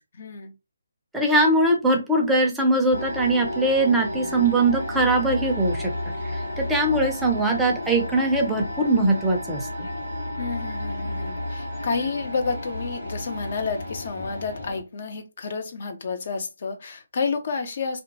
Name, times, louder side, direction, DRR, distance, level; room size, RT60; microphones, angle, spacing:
voice 1, 0.2-0.5 10.4-18.0, left 4 dB, 45° left, 0.5 m, -30 dB
voice 2, 1.1-5.9 6.6-9.7, right 2 dB, 5° right, 0.5 m, -21 dB
sound 1, 2.9-14.8, left 1 dB, 75° left, 1.4 m, -32 dB
2.7 x 2.1 x 2.7 m
figure-of-eight pair, 145°, 0 cm